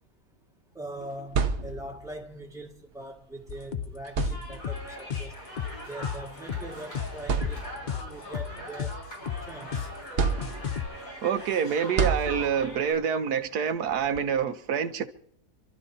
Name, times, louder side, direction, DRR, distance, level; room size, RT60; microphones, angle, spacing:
voice 1, 0.7-5.4 5.9-7.6 8.0-9.0 9.5-9.9, right 1 dB, ahead, 1.8 m, -42 dB
sound 1, 1.0-2.2 3.4-3.6 4.1-4.9 6.0-6.2 6.7-6.8 7.2-8.0 8.5-9.6 10.2-11.0 12.0-12.9, right 5 dB, 50° right, 1.1 m, -30 dB
sound 2, 3.5-10.9, left 8 dB, 60° left, 0.4 m, -34 dB
sound 3, 4.3-12.9, left 1 dB, 75° left, 5.9 m, -42 dB
voice 2, 11.2-15.1, right 7 dB, 85° right, 1.4 m, -27 dB
28.0 x 12.5 x 2.8 m
omnidirectional pair, 1.6 m